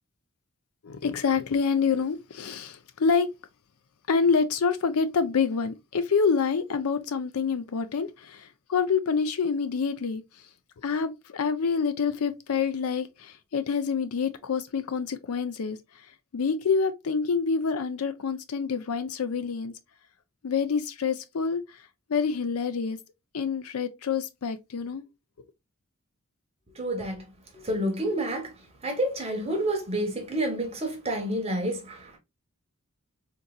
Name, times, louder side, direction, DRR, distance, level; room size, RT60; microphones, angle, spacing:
voice 1, 0.8-3.3 4.1-10.2 10.8-15.8 16.3-19.7 20.4-21.6 22.1-23.0 23.3-25.0, left 5 dB, 85° left, 0.5 m, -27 dB
voice 2, 26.8-27.2 27.5-28.5 28.8-32.2, right 1 dB, 30° right, 1.0 m, -29 dB
3.9 x 2.6 x 2.2 m
head